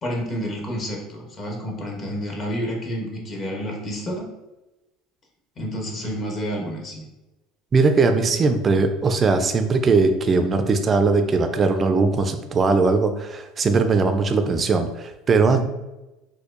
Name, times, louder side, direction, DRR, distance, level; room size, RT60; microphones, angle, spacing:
voice 1, 0.0-4.3 5.6-7.0, equal, 35° left, -1 dB, 0.9 m, -29 dB
voice 2, 7.7-15.6, right 4 dB, 30° right, 7 dB, 0.4 m, -20 dB
4.4 x 2.3 x 2.5 m, 1.0 s
supercardioid pair, 115°, 0 cm